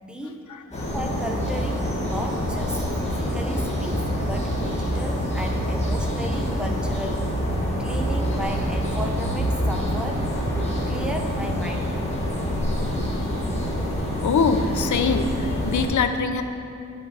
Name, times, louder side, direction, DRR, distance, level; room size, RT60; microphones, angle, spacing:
voice 1, 0.0-0.5 0.9-7.5 7.8-10.3 10.9-11.9, equal, 5° right, 1 dB, 0.7 m, -34 dB
sound 1, 0.7-15.8, equal, 20° left, 1.6 m, -26 dB
voice 2, 14.2-16.4, left 5 dB, 65° left, 8 dB, 0.6 m, -23 dB
9.2 x 6.9 x 4.8 m, 2.7 s
wide cardioid pair, 150°, 31 cm